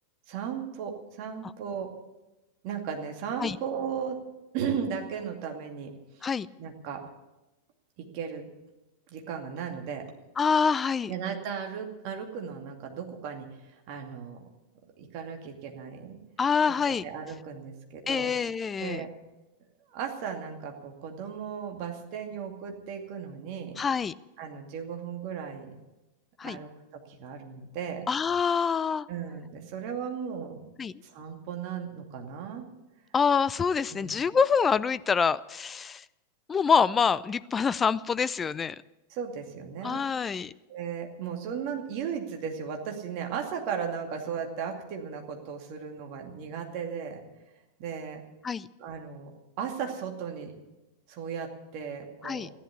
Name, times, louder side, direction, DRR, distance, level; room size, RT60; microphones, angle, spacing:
voice 1, 0.3-1.9 2.6-4.2 4.5-6.2 6.6-7.0 8.0-8.5 9.1-10.1 11.1-13.5 13.7-14.4 15.0-16.2 17.0-18.3 18.8-19.1 19.9-23.8 24.4-25.7 26.4-28.0 29.1-30.7 31.0-32.7 33.9-34.1 39.1-40.0 40.7-47.2 47.8-48.2 48.8-49.3 49.6-50.5 51.1-52.5, right 7 dB, 45° right, 3 dB, 2.4 m, -36 dB
voice 2, 10.4-11.1 16.4-17.0 18.1-19.1 23.8-24.1 26.4-26.6 28.1-29.1 30.8-30.9 33.1-36.0 36.5-38.8 39.8-40.5 48.4-48.7 52.2-52.5, left 6 dB, 20° left, 17 dB, 0.4 m, -26 dB
14.5 x 11.0 x 8.2 m, 1.0 s
figure-of-eight pair, 90°, 0 cm